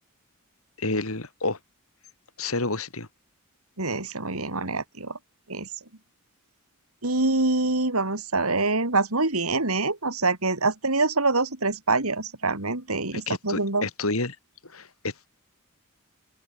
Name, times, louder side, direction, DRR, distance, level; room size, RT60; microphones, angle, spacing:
voice 1, 0.8-1.6 2.4-3.1 13.1-14.4 14.6-15.3, left 2 dB, 75° left, 4.4 m, -29 dB
voice 2, 3.8-5.2 5.5-5.7 7.0-13.9, right 3 dB, 90° right, 4.3 m, -25 dB
open air
head